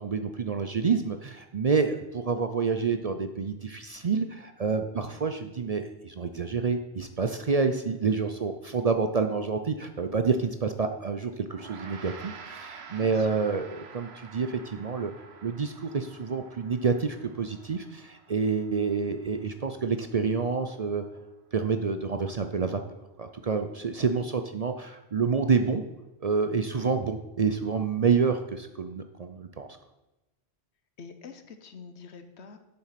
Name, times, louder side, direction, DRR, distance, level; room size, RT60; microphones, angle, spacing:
voice 1, 0.0-15.1 15.4-21.0 21.5-22.8 23.2-25.8 26.2-29.7, right 5 dB, 45° right, 7 dB, 0.5 m, -28 dB
Gong, 11.5-21.0, right 5 dB, 70° right, 1.2 m, -49 dB
voice 2, 12.9-13.5 31.0-32.6, left 5 dB, 75° left, 8 dB, 1.2 m, -46 dB
7.8 x 7.4 x 5.8 m, 1.0 s
omnidirectional pair, 1.1 m